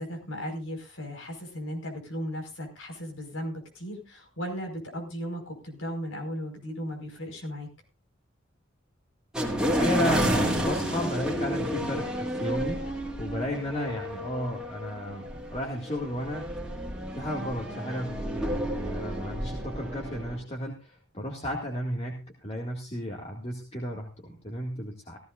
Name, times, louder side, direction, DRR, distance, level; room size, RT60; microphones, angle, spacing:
voice 1, 0.0-7.7, equal, 80° left, 3 dB, 5.0 m, -36 dB
sound 1, 9.3-20.4, equal, 5° right, 2.6 m, -31 dB
voice 2, 9.6-12.8 13.2-16.5 17.1-25.2, equal, 30° left, -1 dB, 2.1 m, -33 dB
16.5 x 15.5 x 2.5 m, 0.30 s
head